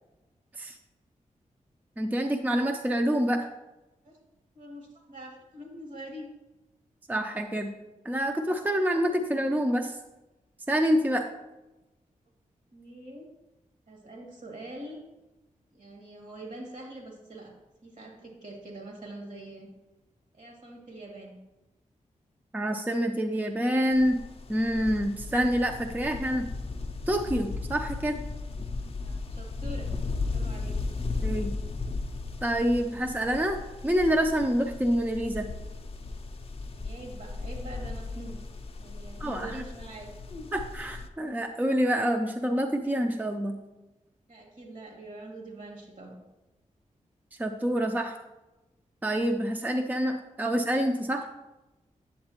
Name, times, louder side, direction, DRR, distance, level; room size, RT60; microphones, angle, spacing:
voice 1, 2.0-3.5 7.1-7.7 8.0-10.0 10.7-11.3 22.5-24.2 24.5-26.5 27.1-28.2 31.2-31.5 32.4-33.6 33.8-35.5 39.2-39.5 40.5-43.6 47.4-48.2 49.0-51.3, equal, 10° right, 5 dB, 0.5 m, -27 dB
voice 2, 4.5-6.3 12.7-13.3 13.9-15.0 15.7-17.5 17.8-19.7 20.3-21.3 29.0-29.9 30.3-30.8 31.1-31.3 36.7-38.4 38.8-40.5 44.3-46.2, right 1 dB, 65° right, -1 dB, 2.4 m, -44 dB
sound 1, 23.9-41.1, left 3 dB, 45° left, 0.5 m, -36 dB
8.5 x 7.6 x 2.9 m, 1.0 s
wide cardioid pair, 90°, 14 cm